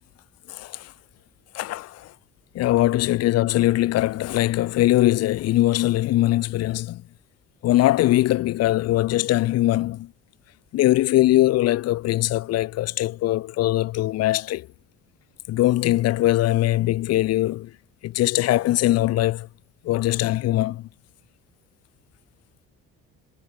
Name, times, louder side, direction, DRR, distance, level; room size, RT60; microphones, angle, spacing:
voice 1, 0.5-0.9 1.5-2.1 2.5-7.0 7.6-10.1 10.7-14.7 15.5-17.7 18.0-19.5 19.8-20.9, left 15 dB, 55° left, 0.5 m, -21 dB
cardioid pair, 115°, 30 cm